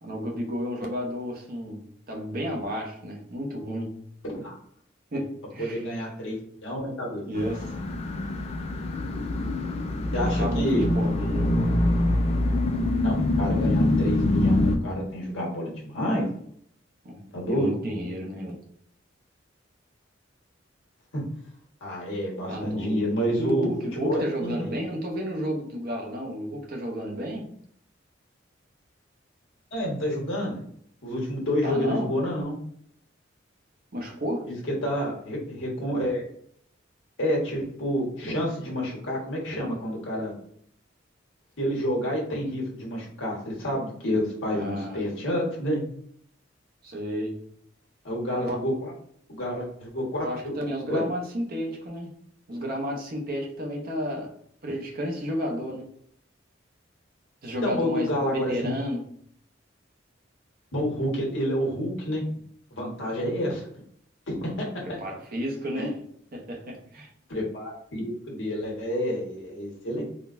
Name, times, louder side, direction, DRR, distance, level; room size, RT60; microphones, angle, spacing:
voice 1, 0.0-4.0 5.1-5.8 7.3-7.7 10.1-11.6 17.0-18.6 22.5-23.1 23.4-27.5 31.6-32.1 33.9-34.6 44.5-45.1 46.8-47.4 48.4-48.6 50.2-52.2 52.5-54.3 54.6-55.9 57.4-59.0 64.8-66.0 66.3-67.1, equal, 50° right, 0.8 m, -32 dB
voice 2, 5.6-7.3 10.1-10.9 13.0-16.3 17.3-17.7 21.1-21.3 21.8-23.7 24.0-24.7 29.7-30.6 31.0-32.6 34.4-36.3 37.2-40.3 41.6-45.8 48.0-48.9 49.3-50.3 50.9-51.0 57.6-58.7 60.7-62.2 62.8-63.6 64.3-64.8 65.8-65.9 67.3-70.0, equal, 85° left, 1.3 m, -29 dB
sound 1, 7.3-14.8, left 1 dB, 35° left, 0.4 m, -25 dB
3.7 x 2.2 x 2.5 m
head